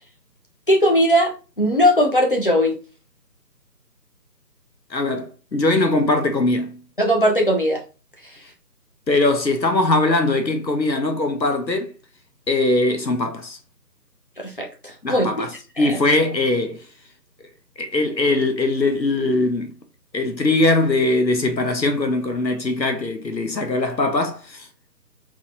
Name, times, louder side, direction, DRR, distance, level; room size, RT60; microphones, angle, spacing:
voice 1, 0.7-1.3 1.6-2.8 7.0-7.8 14.4-15.5 15.8-16.0, equal, 30° left, 0.8 m, -19 dB
voice 2, 4.9-6.8 9.1-11.9 12.5-13.6 15.0-16.8 17.8-19.7 20.1-24.7, left 2 dB, 85° left, 1.2 m, -21 dB
3.9 x 3.1 x 3.8 m
figure-of-eight pair, 155°, 50 cm